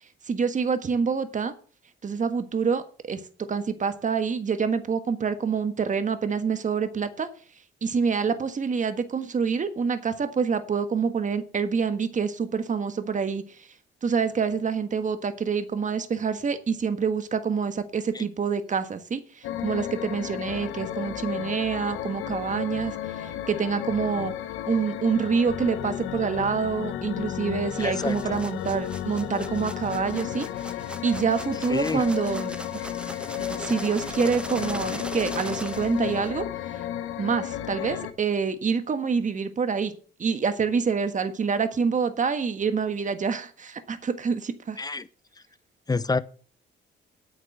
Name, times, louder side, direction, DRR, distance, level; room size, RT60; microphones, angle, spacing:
voice 1, 0.3-1.5 2.0-7.3 7.8-13.4 14.0-24.3 24.7-30.5 31.0-32.5 33.4-36.5 37.2-39.9 40.2-44.8, right 5 dB, 40° right, 1.5 m, -26 dB
sound 1, 19.4-38.1, left 11 dB, 90° left, 1.1 m, -33 dB
sound 2, 27.7-36.4, right 1 dB, 5° right, 1.0 m, -40 dB
voice 2, 27.8-28.4 31.7-32.0 37.9-38.0 44.8-45.1 45.9-46.2, left 3 dB, 20° left, 0.7 m, -28 dB
8.9 x 6.6 x 7.9 m
cardioid pair, 90°, 20 cm